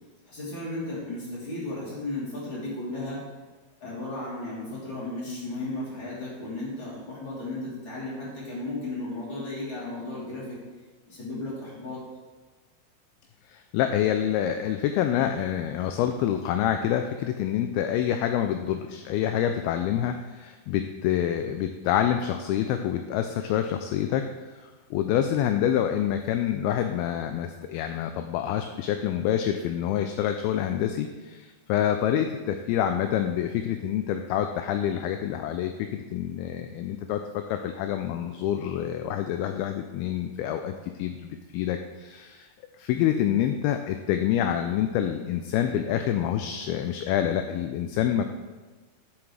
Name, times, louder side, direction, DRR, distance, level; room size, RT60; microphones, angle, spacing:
voice 1, 0.3-3.3 3.8-10.6 11.1-12.0, left 2 dB, 30° left, -7 dB, 3.8 m, -35 dB
voice 2, 13.5-40.7 41.0-42.5 42.8-48.2, left 10 dB, 80° left, 6 dB, 2.3 m, -27 dB
13.0 x 7.3 x 3.3 m, 1.3 s
omnidirectional pair, 4.7 m